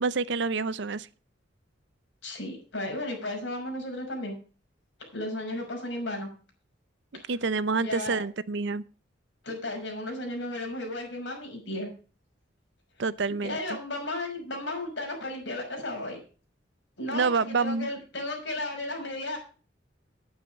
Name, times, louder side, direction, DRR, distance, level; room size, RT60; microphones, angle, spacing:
voice 1, 0.0-1.1 7.1-8.8 13.0-13.8 17.1-17.9, right 4 dB, 65° right, 0.6 m, -28 dB
voice 2, 2.2-4.4 5.1-6.3 7.1-7.3 7.8-8.2 9.4-11.9 13.4-16.2 17.0-19.4, left 1 dB, 70° left, 6.1 m, -34 dB
9.9 x 9.2 x 6.4 m
head